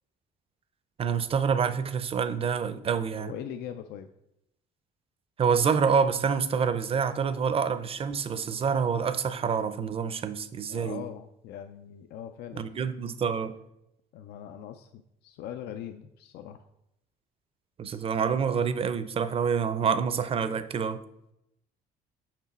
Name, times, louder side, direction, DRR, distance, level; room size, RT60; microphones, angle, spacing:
voice 1, 1.0-3.3 5.4-11.0 12.6-13.5 17.8-21.0, right 6 dB, 35° right, 0.5 m, -27 dB
voice 2, 3.1-4.1 10.7-12.9 14.1-16.6, left 9 dB, 75° left, 0.4 m, -41 dB
6.0 x 5.4 x 4.2 m
cardioid pair, 110°, 17 cm